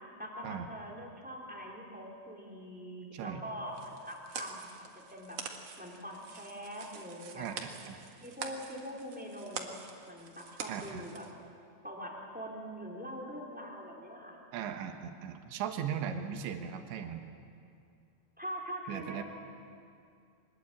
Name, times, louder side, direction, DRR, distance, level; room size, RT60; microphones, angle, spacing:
voice 1, 0.2-5.4 5.8-7.5 8.2-9.8 10.1-11.2 11.8-14.4 18.4-19.2, equal, ahead, 0 dB, 2.7 m, -43 dB
voice 2, 3.1-3.5 7.4-8.0 10.7-11.1 14.5-17.3 18.9-19.2, right 8 dB, 85° right, 5 dB, 3.7 m, -38 dB
sound 1, 3.7-11.3, right 6 dB, 55° right, 1.8 m, -46 dB
24.0 x 20.5 x 8.6 m, 2.4 s
omnidirectional pair, 5.0 m